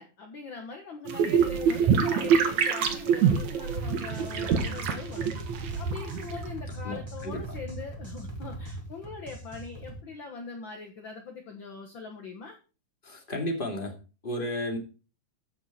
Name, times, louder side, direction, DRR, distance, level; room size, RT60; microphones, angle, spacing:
voice 1, 0.0-5.3 5.6-12.6, left 4 dB, 55° left, 1.4 m, -42 dB
sound 1, 1.1-6.5, right 7 dB, 60° right, 2.6 m, -25 dB
sound 2, 3.9-10.0, right 1 dB, 5° right, 3.5 m, -40 dB
voice 2, 6.8-7.4 13.0-13.9 14.2-14.8, left 1 dB, 15° left, 2.2 m, -33 dB
15.0 x 6.2 x 4.3 m
omnidirectional pair, 4.0 m